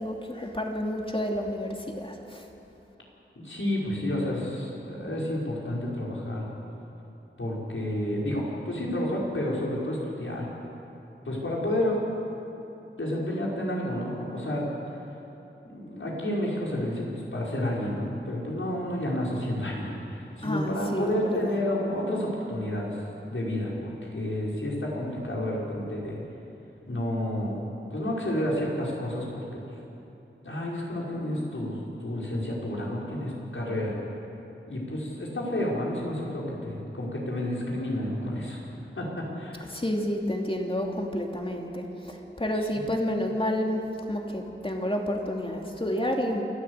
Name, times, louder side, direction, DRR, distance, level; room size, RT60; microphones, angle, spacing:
voice 1, 0.0-2.4 20.4-21.5 39.7-46.4, equal, 25° left, 1 dB, 2.8 m, -30 dB
voice 2, 3.4-6.4 7.4-10.5 11.2-12.0 13.0-14.7 15.6-17.1 17.3-26.2 26.9-27.6 27.9-29.6 30.4-33.9 34.7-38.6 39.0-39.7, left 1 dB, 75° left, -4 dB, 5.4 m, -30 dB
28.5 x 13.0 x 8.2 m, 3.0 s
wide cardioid pair, 65°, 21 cm